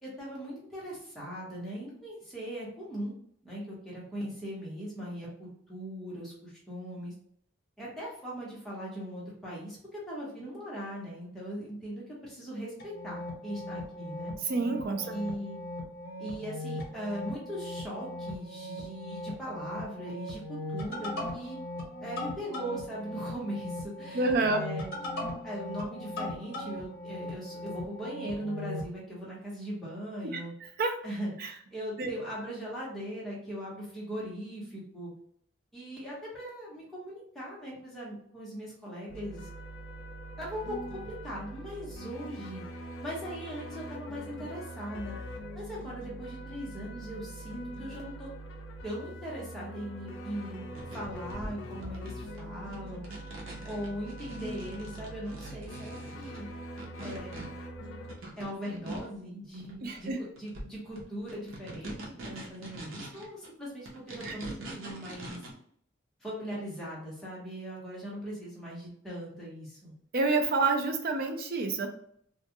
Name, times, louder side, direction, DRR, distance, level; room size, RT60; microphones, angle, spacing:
voice 1, 0.0-3.1 3.4-7.1 7.8-14.3 15.1-15.6 16.2-21.6 22.0-24.9 25.4-30.5 31.0-31.3 31.7-35.1 35.7-39.5 40.4-42.6 43.0-45.2 45.5-48.3 48.8-53.0 53.6-56.5 57.0-57.3 58.4-65.4 66.2-69.9, equal, ahead, -7 dB, 0.9 m, -39 dB
sound 1, 12.8-28.9, left 1 dB, 50° left, 1.0 m, -39 dB
voice 2, 14.5-15.1 24.1-24.6 30.2-30.4 30.8-31.0 31.4-31.5 32.0-32.1 59.8-60.2 64.2-64.4 70.1-71.9, right 3 dB, 45° right, 5 dB, 0.4 m, -28 dB
sound 2, 39.1-58.2, equal, 70° left, 0.4 m, -43 dB
sound 3, 50.7-59.2 59.5-60.1 60.4-63.5 63.8-65.5, right 1 dB, 75° right, 0.8 m, -44 dB
2.3 x 2.2 x 2.8 m, 0.66 s
head